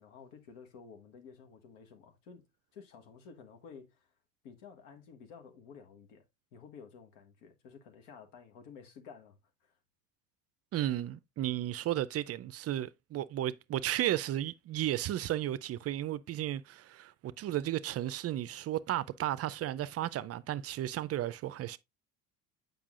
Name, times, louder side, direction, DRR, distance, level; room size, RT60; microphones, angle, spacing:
voice 1, 0.0-2.5 2.7-4.1 4.4-6.2 6.5-9.8, left 6 dB, 85° left, 1.3 m, -53 dB
voice 2, 10.7-21.8, right 13 dB, 40° right, 0.4 m, -34 dB
7.2 x 5.5 x 2.4 m
supercardioid pair, 90°, 39 cm